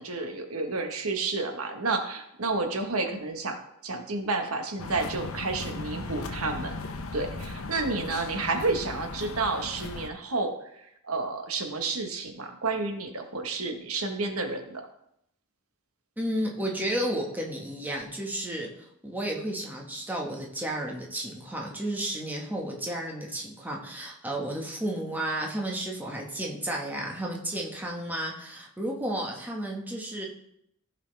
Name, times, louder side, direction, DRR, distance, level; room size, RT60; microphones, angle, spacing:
voice 1, 0.0-3.6 3.8-6.7 7.1-14.8, right 3 dB, 90° right, 5 dB, 1.4 m, -30 dB
sound 1, 4.8-10.1, left 3 dB, 75° left, 0.8 m, -37 dB
voice 2, 16.2-30.3, right 1 dB, 10° right, -2 dB, 1.5 m, -32 dB
15.0 x 5.8 x 3.4 m, 0.76 s
head